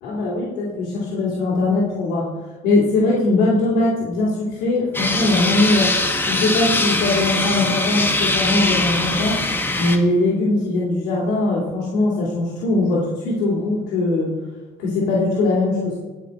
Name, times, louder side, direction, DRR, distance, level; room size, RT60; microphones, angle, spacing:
voice 1, 0.0-2.3 2.6-9.5 9.8-14.3 14.8-16.0, left 2 dB, 90° left, -6 dB, 2.6 m, -21 dB
sound 1, 4.9-10.0, left 2 dB, 10° left, 1.3 m, -21 dB
17.5 x 5.8 x 4.2 m, 1.3 s
cardioid pair, 110°, 17 cm